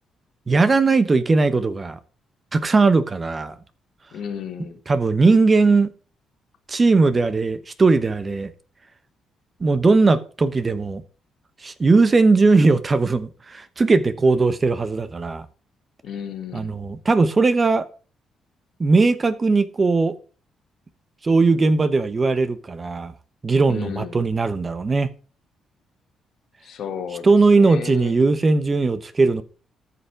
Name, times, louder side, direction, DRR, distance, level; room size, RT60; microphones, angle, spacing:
voice 1, 0.5-2.0 2.5-3.6 4.9-5.9 6.7-8.5 9.6-11.0 11.6-15.5 16.5-17.9 18.8-20.1 21.2-23.1 23.4-25.1 27.2-29.4, right 3 dB, 30° right, 0.9 m, -18 dB
voice 2, 4.1-4.8 16.0-16.8 23.7-24.2 26.6-28.1, left 8 dB, 70° left, 1.8 m, -33 dB
14.0 x 5.7 x 4.7 m
cardioid pair, 90°, 0 cm